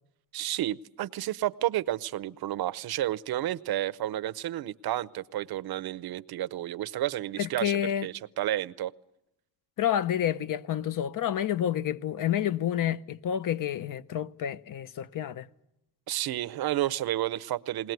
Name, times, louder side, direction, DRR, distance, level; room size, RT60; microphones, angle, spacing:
voice 1, 0.3-7.7 8.0-8.9 16.1-17.9, right 13 dB, 70° right, 0.8 m, -31 dB
voice 2, 7.4-8.1 9.8-15.5, left 10 dB, 55° left, 0.8 m, -29 dB
21.0 x 19.0 x 9.3 m
cardioid pair, 125°, 38 cm